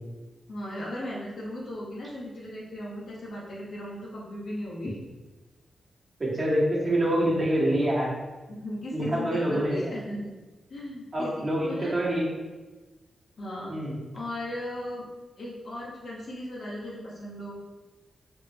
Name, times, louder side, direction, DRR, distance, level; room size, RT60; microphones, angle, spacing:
voice 1, 0.5-5.0 8.5-10.3 10.7-12.0 13.4-13.8 14.1-15.1 15.4-17.6, left 1 dB, 65° left, -6 dB, 0.8 m, -37 dB
voice 2, 6.2-8.1 8.9-9.8 11.1-12.2 13.7-14.0, right 1 dB, 35° right, -5 dB, 1.1 m, -25 dB
3.6 x 3.0 x 2.8 m, 1.2 s
wide cardioid pair, 105°, 0 cm